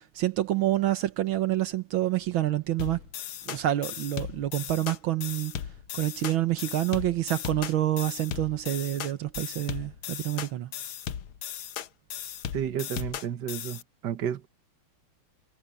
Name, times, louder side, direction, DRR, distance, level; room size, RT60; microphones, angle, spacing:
voice 1, 0.0-3.0 3.5-5.6 5.9-10.7, right 13 dB, 80° right, 1.7 m, -27 dB
sound 1, 2.8-13.8, left 10 dB, 85° left, 1.9 m, -37 dB
voice 2, 12.5-14.5, right 9 dB, 60° right, 1.7 m, -32 dB
omnidirectional pair, 2.2 m